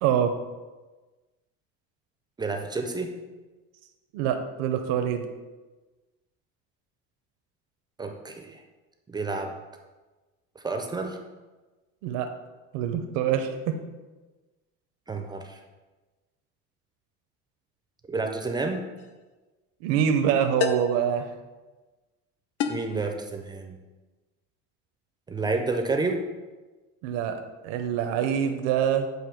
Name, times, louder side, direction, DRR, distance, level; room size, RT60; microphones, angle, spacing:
voice 1, 0.0-0.4 4.1-5.3 12.0-12.3 12.7-13.8 19.8-21.3 27.0-29.1, right 8 dB, 85° right, 6 dB, 0.6 m, -25 dB
voice 2, 2.4-3.1 8.0-8.6 9.1-9.5 10.6-11.2 15.1-15.6 18.1-18.8 22.7-23.8 25.3-26.2, right 3 dB, 15° right, 4 dB, 0.3 m, -30 dB
sound 1, 19.0-19.2 20.6-21.0 22.6-23.0, left 7 dB, 85° left, 0.6 m, -29 dB
7.8 x 2.6 x 5.0 m, 1.2 s
cardioid pair, 145°, 31 cm